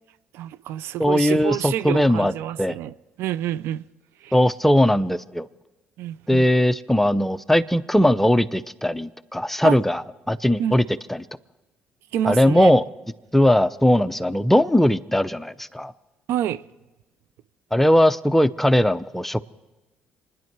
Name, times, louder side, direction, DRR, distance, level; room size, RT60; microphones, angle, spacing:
voice 1, 0.3-3.8 4.2-4.4 6.0-6.5 9.6-9.8 10.6-10.7 12.1-12.7 16.3-16.6, right 11 dB, 70° right, 0.4 m, -28 dB
voice 2, 1.0-2.3 2.6-2.8 4.3-5.5 6.3-11.2 12.3-12.8 13.3-15.9 17.7-19.4, left 1 dB, 5° left, 0.6 m, -19 dB
27.5 x 10.5 x 4.6 m
hypercardioid pair, 55°, 4 cm